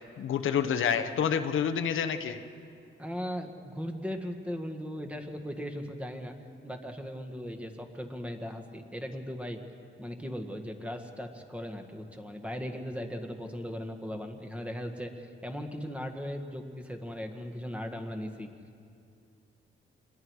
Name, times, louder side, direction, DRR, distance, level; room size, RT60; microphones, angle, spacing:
voice 1, 0.2-2.4, left 7 dB, 80° left, 9 dB, 0.9 m, -28 dB
voice 2, 3.0-6.3 6.6-9.6 10.0-18.5, equal, 5° right, 4 dB, 1.7 m, -38 dB
27.5 x 21.0 x 4.8 m, 2.4 s
cardioid pair, 120°, 20 cm